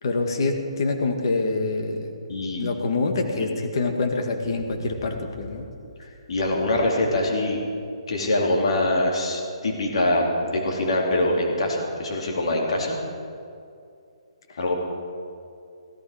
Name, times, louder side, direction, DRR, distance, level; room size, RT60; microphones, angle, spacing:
voice 1, 0.0-2.1 2.5-5.7 14.5-14.7, left 3 dB, 50° left, 4 dB, 1.9 m, -26 dB
voice 2, 2.3-2.6 3.4-3.5 6.0-7.6 8.1-13.0 14.6-14.7, left 1 dB, 65° left, -1 dB, 3.4 m, -24 dB
sound 1, 4.4-7.8 8.7-8.8, left 1 dB, 5° right, 1.6 m, -46 dB
16.5 x 14.5 x 5.1 m, 2.4 s
hypercardioid pair, 170°, 3 cm